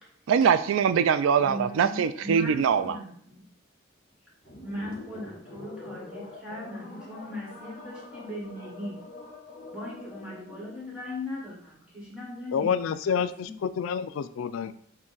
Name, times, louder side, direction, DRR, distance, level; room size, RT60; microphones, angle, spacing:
voice 1, 0.3-3.0, right 7 dB, 75° right, 13 dB, 0.3 m, -23 dB
voice 2, 1.3-3.4 4.6-9.0 9.7-13.5, left 1 dB, 5° right, -5 dB, 1.3 m, -39 dB
sound 1, 4.4-10.9, left 2 dB, 60° left, 1.4 m, -45 dB
voice 3, 12.5-14.7, left 7 dB, 80° left, 13 dB, 0.3 m, -28 dB
6.1 x 2.2 x 3.9 m, 0.64 s
head